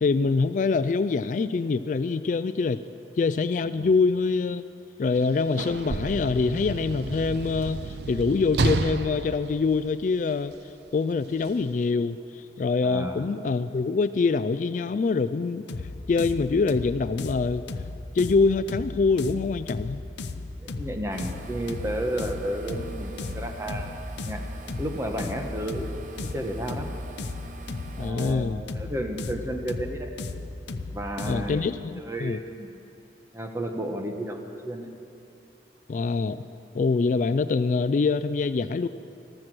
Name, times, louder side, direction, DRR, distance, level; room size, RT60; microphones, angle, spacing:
voice 1, 0.0-2.8 3.2-4.6 5.0-10.5 10.9-15.6 16.1-17.6 18.1-20.0 28.0-28.6 31.2-32.4 35.9-36.4 36.7-38.9, left 4 dB, 45° left, 13 dB, 0.3 m, -25 dB
Sliding door / Slam, 5.1-10.5 11.4-11.6, right 3 dB, 70° right, 0.5 m, -31 dB
voice 2, 12.8-13.3 20.6-24.0 24.2-24.4 24.8-25.9 26.2-26.9 28.0-30.1 30.9-32.7 33.3-34.9, right 1 dB, 15° right, 4 dB, 1.0 m, -32 dB
sound 1, 15.7-31.6, left 3 dB, 80° left, 0.6 m, -35 dB
sound 2, 21.1-28.1, right 2 dB, 45° right, 0.9 m, -42 dB
14.0 x 13.0 x 6.1 m, 2.6 s
head